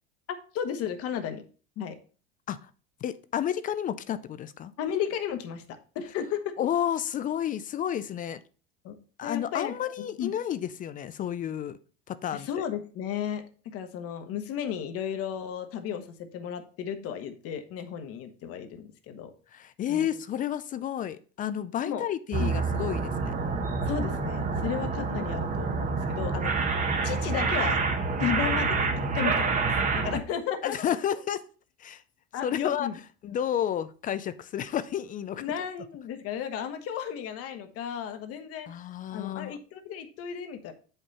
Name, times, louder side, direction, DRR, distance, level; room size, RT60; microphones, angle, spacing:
voice 1, 0.5-1.4 1.8-2.0 4.8-5.6 5.9-6.4 8.8-8.9 9.2-9.7 10.2-10.3 12.3-19.3 19.9-20.0 21.8-22.0 22.4-22.5 23.9-26.5 27.0-27.8 28.2-28.9 29.1-29.7 29.9-30.8 32.3-33.0 35.4-38.7 39.1-40.7, left 8 dB, 50° left, 8 dB, 1.2 m, -34 dB
voice 2, 3.0-4.7 6.6-8.4 9.2-11.8 12.1-12.6 19.5-23.3 30.6-31.4 31.8-32.0 32.4-32.9 33.2-35.4 38.7-39.6, left 10 dB, 25° left, 14 dB, 0.4 m, -31 dB
sound 1, 22.3-30.2, right 4 dB, 25° right, 1.0 m, -27 dB
7.2 x 5.5 x 4.1 m, 0.39 s
supercardioid pair, 110°, 31 cm